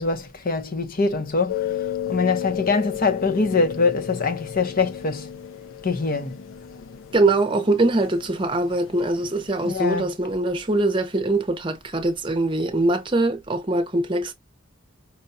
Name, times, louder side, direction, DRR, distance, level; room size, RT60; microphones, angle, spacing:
voice 1, 0.0-1.8 2.1-5.3 5.8-6.4 9.6-10.1, left 4 dB, 45° left, 0.7 m, -23 dB
sound 1, 1.5-9.8, left 10 dB, 70° left, 0.5 m, -34 dB
voice 2, 7.1-14.3, right 2 dB, 25° right, 0.7 m, -22 dB
5.5 x 2.2 x 2.6 m
head